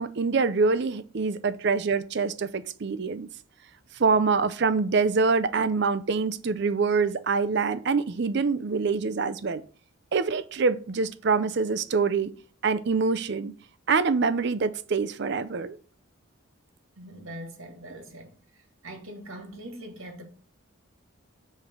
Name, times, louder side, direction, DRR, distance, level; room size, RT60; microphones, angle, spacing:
voice 1, 0.0-3.3 4.0-9.6 10.1-12.3 12.6-13.5 13.9-15.8, right 4 dB, 55° right, 0.5 m, -25 dB
voice 2, 17.0-18.3 18.8-20.2, right 1 dB, 80° right, 2.2 m, -41 dB
7.2 x 3.3 x 6.1 m
head